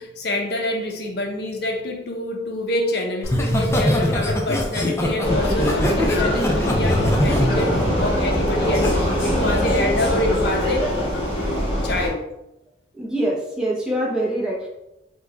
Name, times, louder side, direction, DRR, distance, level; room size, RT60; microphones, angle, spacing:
voice 1, 0.0-12.2, left 1 dB, 55° left, 2 dB, 0.6 m, -27 dB
Laughter, 3.2-8.9 9.3-9.6, left 1 dB, 15° left, 0.3 m, -23 dB
Vehicle, 5.2-12.1, equal, 30° left, 1.4 m, -22 dB
voice 2, 12.9-14.7, right 1 dB, 5° right, -5 dB, 0.7 m, -24 dB
3.0 x 2.2 x 3.6 m, 0.88 s
head